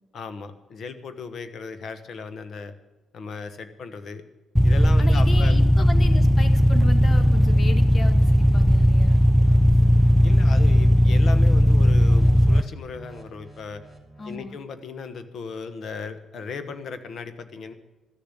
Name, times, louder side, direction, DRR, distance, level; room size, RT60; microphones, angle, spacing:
voice 1, 0.1-2.7 3.1-4.2 4.6-5.7 10.2-13.8 14.2-17.7, left 5 dB, 60° left, 10 dB, 1.2 m, -36 dB
sound 1, 4.6-12.6, equal, ahead, 0.4 m, -17 dB
voice 2, 5.0-9.2 14.2-14.6, left 3 dB, 40° left, 8 dB, 1.4 m, -36 dB
sound 2, 8.5-9.6 10.0-10.3 10.6-10.9 11.1-14.4, equal, 20° left, 2.7 m, -47 dB
13.0 x 6.9 x 9.9 m, 1.1 s
cardioid pair, 90°, 0 cm